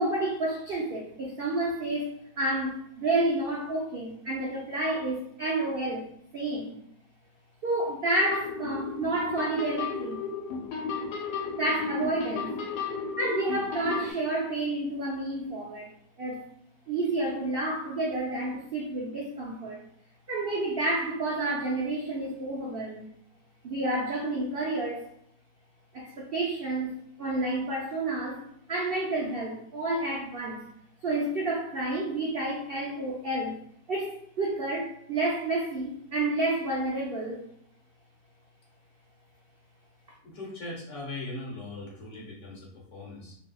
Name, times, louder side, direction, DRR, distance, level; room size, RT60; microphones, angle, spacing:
voice 1, 0.0-6.8 7.6-10.3 11.6-12.6 13.2-15.9 16.2-16.4 16.9-19.8 20.3-23.0 23.6-25.1 25.9-28.4 28.7-30.7 31.0-33.6 33.9-37.4, right 2 dB, 65° right, -3 dB, 0.5 m, -30 dB
sound 1, 8.2-14.1, left 5 dB, 80° left, 1.1 m, -34 dB
voice 2, 40.2-43.4, left 2 dB, 55° left, -3 dB, 1.2 m, -40 dB
4.5 x 2.7 x 2.2 m, 0.68 s
omnidirectional pair, 1.7 m